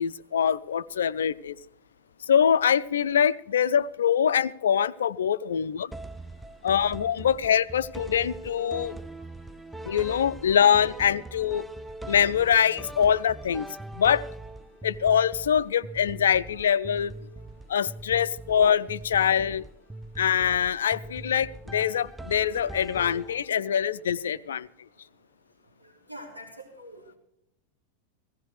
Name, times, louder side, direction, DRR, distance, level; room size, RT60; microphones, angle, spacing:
voice 1, 0.0-1.6 2.3-5.9 6.6-9.0 9.8-11.7 12.1-13.7 13.9-14.3 14.8-17.1 17.7-19.6 20.2-24.7, left 8 dB, 65° left, 16 dB, 0.5 m, -24 dB
sound 1, 5.9-23.7, right 2 dB, 5° right, 0.4 m, -42 dB
voice 2, 25.8-27.2, equal, 85° right, -2 dB, 3.9 m, -45 dB
17.0 x 16.0 x 3.3 m, 0.75 s
figure-of-eight pair, 90°, 0 cm